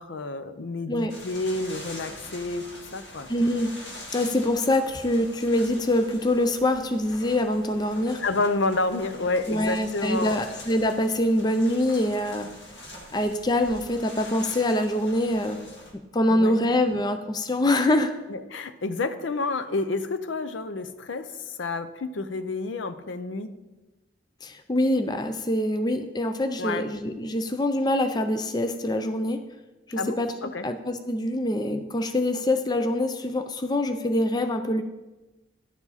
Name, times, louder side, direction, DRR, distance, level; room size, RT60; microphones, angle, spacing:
voice 1, 0.0-2.6 2.9-3.3 8.2-10.4 16.3-16.6 18.3-21.3 21.6-23.5 26.6-26.9 30.0-30.2 30.4-30.7, left 3 dB, 75° left, 11 dB, 0.6 m, -29 dB
sound 1, 1.1-15.9, left 1 dB, 60° left, 1.8 m, -44 dB
voice 2, 3.3-3.7 4.1-8.2 9.5-12.5 13.1-15.6 16.1-18.1 24.4-29.4 29.9-34.8, left 1 dB, 20° left, 8 dB, 0.4 m, -25 dB
11.0 x 7.2 x 4.1 m, 1.1 s
head